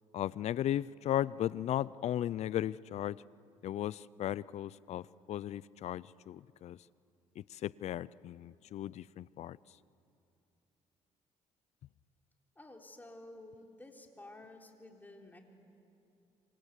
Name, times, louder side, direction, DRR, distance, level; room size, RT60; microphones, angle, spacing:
voice 1, 0.1-3.2 3.6-5.0 5.3-6.8 7.4-9.6, left 12 dB, 60° left, 21 dB, 0.5 m, -36 dB
voice 2, 12.6-15.4, left 2 dB, 15° left, 2 dB, 3.9 m, -52 dB
27.0 x 25.5 x 8.3 m, 2.8 s
cardioid pair, 85°, 13 cm